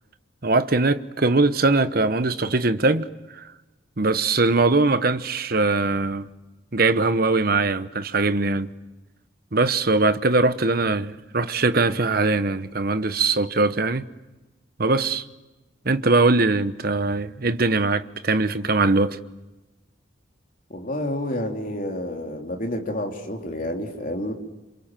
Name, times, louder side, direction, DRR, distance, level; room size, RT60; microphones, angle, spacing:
voice 1, 0.4-3.1 3.3-3.4 4.0-6.3 6.7-8.7 9.5-14.0 14.8-15.2 15.8-19.2, right 3 dB, 50° right, 1.1 m, -21 dB
voice 2, 20.7-24.3, left 1 dB, 40° left, 3.6 m, -29 dB
27.5 x 27.0 x 7.6 m
head